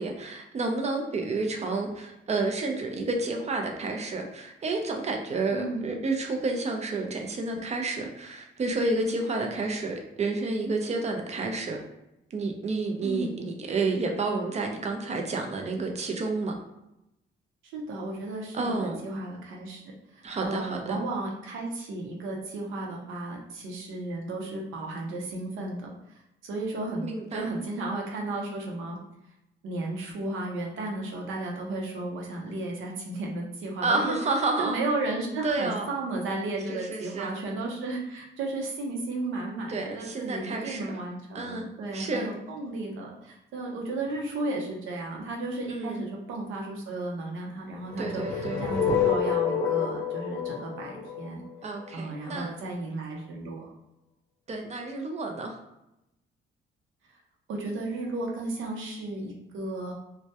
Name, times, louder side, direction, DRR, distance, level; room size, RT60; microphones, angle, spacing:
voice 1, 0.0-11.8 12.3-16.5 18.5-19.0 20.2-21.0 27.0-27.5 33.8-34.8 35.4-35.9 36.7-37.3 39.7-41.0 41.3-41.7 41.9-42.3 45.7-46.0 48.0-48.6 51.6-52.5 54.5-55.6, right 3 dB, 35° right, 2 dB, 0.5 m, -30 dB
voice 2, 5.5-5.9 13.0-13.4 17.7-29.0 29.6-34.2 34.6-51.4 51.9-53.7 57.5-59.9, right 2 dB, 80° right, 0 dB, 0.6 m, -34 dB
sound 1, 47.9-52.0, left 7 dB, 75° left, 0.6 m, -28 dB
2.1 x 2.1 x 2.7 m, 0.88 s
cardioid pair, 90°, 20 cm